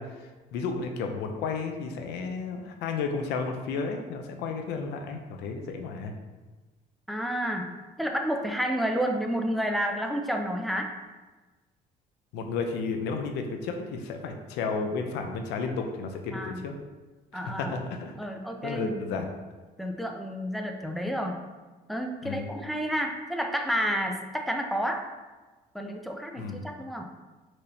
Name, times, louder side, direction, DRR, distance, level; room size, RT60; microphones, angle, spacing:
voice 1, 0.0-6.1 12.3-16.8 17.3-18.2 18.4-19.3 22.2-22.5 26.4-26.6, left 4 dB, 90° left, 4 dB, 0.5 m, -33 dB
voice 2, 7.1-10.9 16.3-16.7 17.3-17.7 18.2-19.2 19.8-21.4 21.9-25.0 25.7-27.1, equal, ahead, 3 dB, 0.4 m, -30 dB
4.4 x 3.1 x 2.7 m, 1.3 s
cardioid pair, 110°, 17 cm